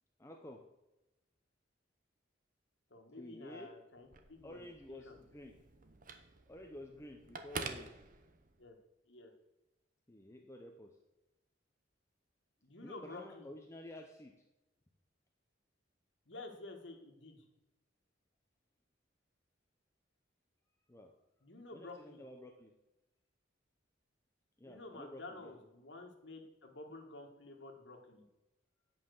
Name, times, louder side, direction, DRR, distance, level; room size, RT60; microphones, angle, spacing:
voice 1, 0.2-0.6 3.2-3.7 4.4-5.6 6.5-7.9 10.1-11.0 12.8-14.4 20.9-21.1 21.7-22.7 24.6-25.5, left 1 dB, 15° left, 2 dB, 0.7 m, -51 dB
voice 2, 2.9-5.2 8.6-8.8 9.1-9.3 12.6-13.5 16.3-17.5 21.4-22.2 24.6-28.2, left 2 dB, 65° left, 3 dB, 1.7 m, -51 dB
Telephone, 4.0-8.7, right 4 dB, 45° right, 0.9 m, -48 dB
9.3 x 5.6 x 6.5 m, 0.97 s
head